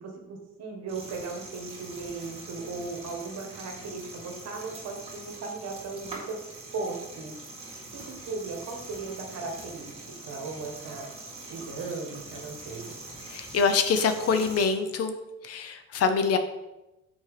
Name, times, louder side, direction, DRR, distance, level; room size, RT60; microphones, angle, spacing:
voice 1, 0.0-6.4 6.7-7.3 7.9-11.1 11.5-12.9, right 4 dB, 60° right, 2 dB, 1.5 m, -37 dB
sound 1, 0.9-14.7, right 2 dB, 20° right, 1.7 m, -43 dB
voice 2, 13.3-15.2 15.4-16.4, left 5 dB, 55° left, 8 dB, 0.7 m, -25 dB
5.9 x 4.5 x 4.9 m, 0.97 s
cardioid pair, 145°, 29 cm